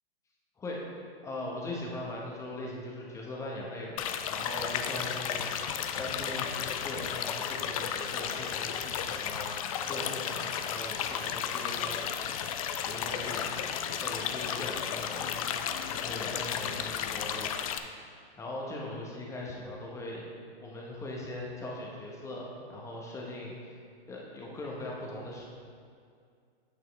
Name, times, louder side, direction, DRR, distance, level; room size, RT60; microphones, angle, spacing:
voice 1, 1.2-4.0 4.3-12.5 12.9-13.7 14.0-15.3 15.9-17.5 18.4-20.3 20.6-23.7 24.1-25.4, left 1 dB, 10° left, -3 dB, 1.1 m, -40 dB
sound 1, 4.0-17.8, left 8 dB, 35° left, 0.4 m, -33 dB
8.5 x 7.2 x 3.4 m, 2.2 s
hypercardioid pair, 140°, 30 cm